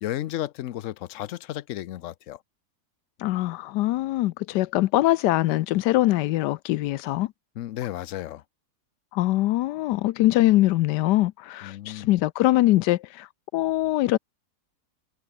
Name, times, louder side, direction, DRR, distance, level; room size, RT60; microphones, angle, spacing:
voice 1, 0.0-2.4 7.6-8.4 11.6-12.1, left 13 dB, 65° left, 0.8 m, -33 dB
voice 2, 3.2-7.3 9.1-13.3 13.5-14.2, left 16 dB, 85° left, 1.2 m, -23 dB
omnidirectional pair, 1.8 m